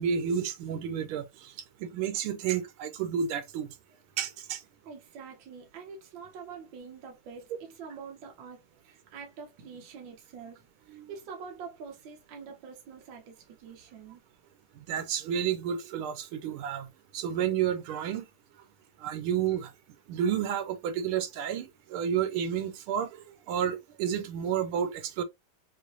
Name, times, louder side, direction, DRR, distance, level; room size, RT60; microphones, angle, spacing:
voice 1, 0.0-1.5 1.8-3.7 4.2-4.6 10.9-11.1 14.9-16.9 17.1-18.2 19.0-19.7 20.1-25.2, right 8 dB, 85° right, 1.6 m, -31 dB
voice 2, 4.8-14.2, right 6 dB, 65° right, 1.6 m, -46 dB
6.0 x 2.6 x 2.5 m
omnidirectional pair, 2.3 m